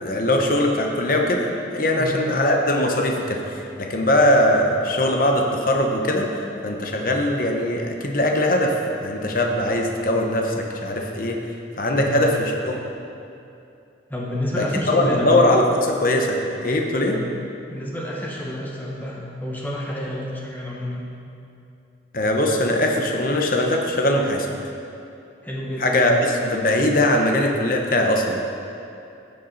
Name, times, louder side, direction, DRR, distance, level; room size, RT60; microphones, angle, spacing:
voice 1, 0.0-11.4 11.8-12.8 14.6-17.2 22.1-24.5 25.8-28.4, left 1 dB, 50° left, 1 dB, 1.0 m, -21 dB
voice 2, 14.1-15.3 17.0-17.3 17.7-21.0 25.4-26.1, left 1 dB, 10° left, -4 dB, 1.4 m, -29 dB
14.5 x 7.3 x 4.1 m, 2.7 s
head